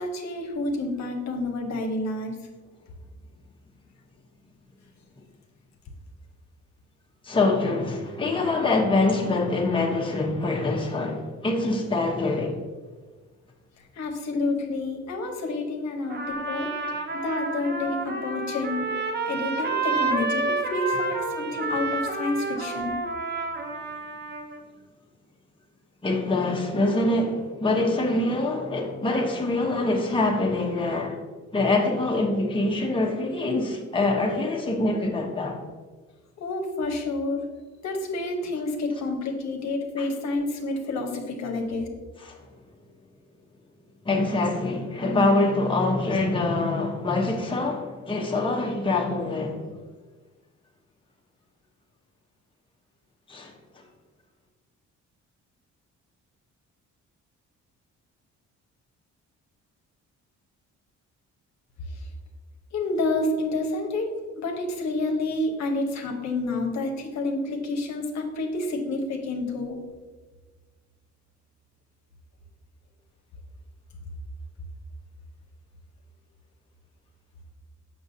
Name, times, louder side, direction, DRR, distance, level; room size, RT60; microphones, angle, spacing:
voice 1, 0.0-2.4 13.9-16.7 17.1-18.9 19.3-23.0 36.4-37.4 37.8-41.9 61.9-62.1 62.7-64.1 64.4-69.8, left 2 dB, 65° left, 1.0 m, -29 dB
voice 2, 7.2-12.6 26.0-31.2 31.5-35.6 40.0-40.1 42.2-42.4 44.0-49.7 53.3-53.8, left 2 dB, 15° left, 1.0 m, -25 dB
Trumpet, 16.1-24.6, right 3 dB, 35° right, 0.8 m, -29 dB
6.1 x 6.0 x 2.7 m
cardioid pair, 90°, 30 cm